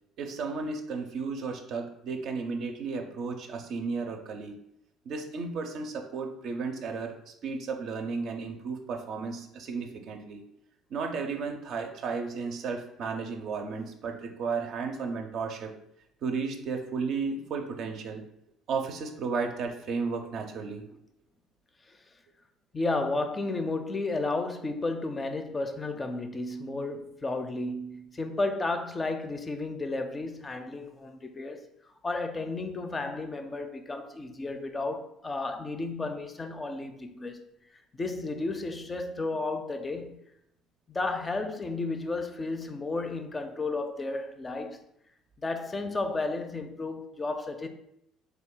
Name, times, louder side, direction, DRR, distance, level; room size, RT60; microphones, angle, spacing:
voice 1, 0.2-4.6 5.1-10.4 10.9-15.7 16.2-18.2 18.7-20.8, right 4 dB, 60° right, 0.5 m, -34 dB
voice 2, 22.7-31.7 32.0-37.4 37.9-40.2 40.9-44.8 45.4-47.7, left 3 dB, 25° left, 0.4 m, -33 dB
3.2 x 2.3 x 3.7 m
hypercardioid pair, 60°, 0 cm